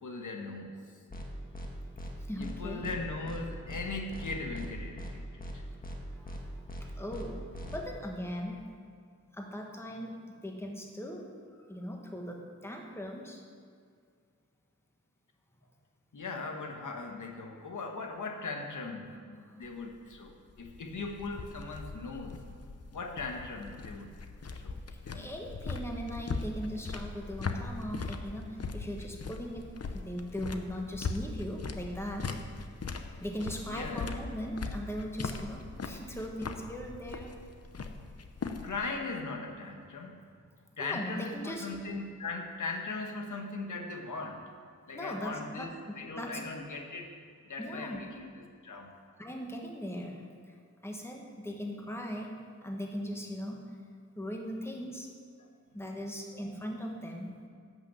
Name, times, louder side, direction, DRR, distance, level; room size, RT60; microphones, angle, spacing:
voice 1, 0.0-0.8 2.4-5.2 5.5-5.6 16.1-22.4 22.9-24.1 24.5-24.8 25.1-25.3 33.7-34.1 38.6-40.2 40.8-44.4 44.9-47.1 47.5-49.0 55.4-55.5, left 3 dB, 80° left, 3 dB, 1.3 m, -39 dB
sound 1, 1.1-1.2 1.5-1.7 2.0-2.1 2.4-2.5 2.8-3.0 3.2-3.4 3.7-3.8 4.1-4.7 5.0-5.1 5.4-5.5 5.8-6.0 6.2-6.4 6.7-6.8 7.1-7.2 7.5-7.8, equal, 30° left, 1.4 m, -40 dB
voice 2, 2.2-2.9 6.2-7.4 7.7-8.7 9.3-11.3 11.7-13.4 19.4-19.6 25.1-32.4 33.2-37.4 40.8-41.7 44.9-46.4 47.6-48.0 49.2-50.6 50.8-52.3 52.6-53.7 54.2-55.1 55.7-57.4, equal, 10° left, 1 dB, 1.4 m, -39 dB
sound 2, 19.6-38.9, left 4 dB, 55° left, 0.8 m, -40 dB
11.0 x 6.2 x 7.4 m, 2.1 s
wide cardioid pair, 115°, 30 cm